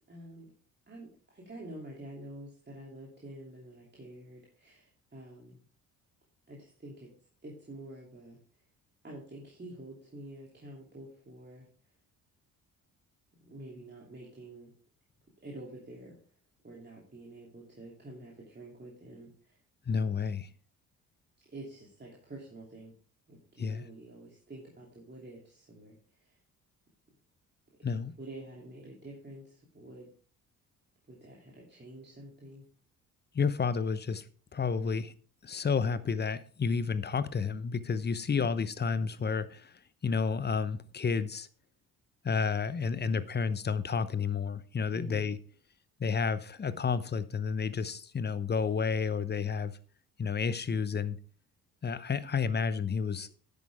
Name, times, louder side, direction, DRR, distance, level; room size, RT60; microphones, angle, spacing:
voice 1, 0.1-0.5 0.9-5.6 6.5-7.1 7.4-8.4 9.0-11.7 13.4-14.7 15.4-16.2 16.6-19.6 19.9-20.3 21.5-22.9 23.3-26.4 28.0-30.1 31.1-32.7 38.3-38.6 44.9-45.3, right 1 dB, 25° right, 3.0 m, -48 dB
voice 2, 19.9-20.5 23.6-23.8 27.8-28.1 33.3-34.2 34.5-35.1 35.4-39.7 40.0-41.5 42.2-45.4 46.0-49.8 50.2-51.2 51.8-53.3, left 5 dB, 25° left, 0.8 m, -31 dB
10.5 x 8.4 x 3.5 m
figure-of-eight pair, 50°, 45 cm